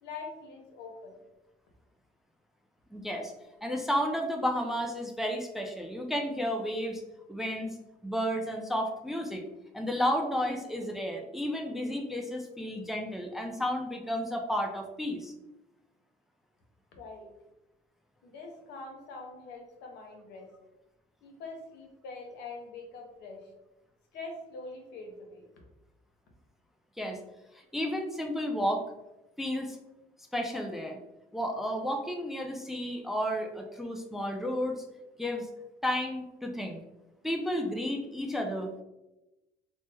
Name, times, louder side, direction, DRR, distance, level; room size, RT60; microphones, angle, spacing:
voice 1, 0.0-1.2 16.9-17.3 18.2-20.5 21.2-23.5 24.1-25.5, left 3 dB, 85° left, 2 dB, 0.7 m, -44 dB
voice 2, 2.9-3.3 3.6-7.0 7.3-7.8 8.0-9.4 9.7-15.3 27.0-27.2 27.7-28.8 29.4-29.8 30.3-31.0 31.3-34.8 35.2-35.5 35.8-36.8 37.2-38.8, equal, ahead, 3 dB, 0.3 m, -32 dB
3.1 x 2.0 x 3.3 m, 0.97 s
cardioid pair, 110°, 17 cm